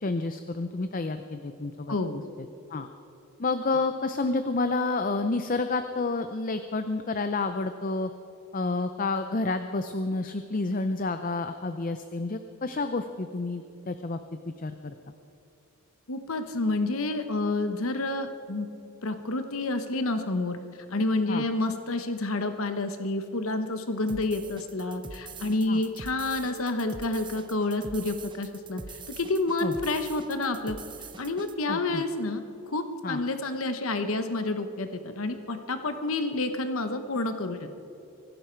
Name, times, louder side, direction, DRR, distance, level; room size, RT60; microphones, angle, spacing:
voice 1, 0.0-2.0 2.7-2.9 3.4-8.1 8.5-14.2 14.5-14.9 21.3-21.4 25.7-25.8 29.6-29.7 31.7-32.0 33.0-33.2, left 3 dB, 35° left, 9 dB, 0.5 m, -29 dB
voice 2, 1.9-2.2 16.1-18.7 19.0-20.6 20.9-28.8 29.1-30.8 31.2-37.7, left 2 dB, 65° left, 8 dB, 0.9 m, -29 dB
sound 1, 24.1-31.5, right 4 dB, 20° right, 0.7 m, -44 dB
24.5 x 12.0 x 4.6 m, 2.9 s
head